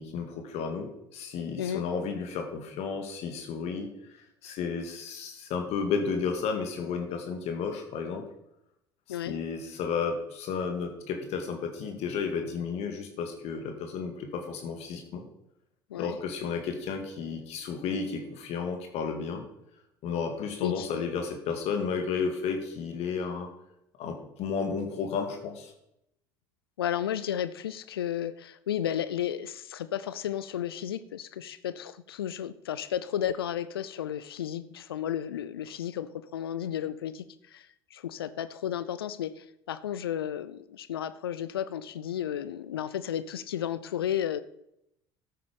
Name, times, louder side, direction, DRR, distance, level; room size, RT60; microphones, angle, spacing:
voice 1, 0.0-8.2 9.1-15.3 16.0-19.4 20.0-23.5 24.0-25.7, left 5 dB, 60° left, 4 dB, 2.0 m, -33 dB
voice 2, 20.6-21.0 26.8-44.4, left 10 dB, 90° left, 15 dB, 0.5 m, -33 dB
12.0 x 8.8 x 5.2 m, 0.80 s
hypercardioid pair, 65°, 12 cm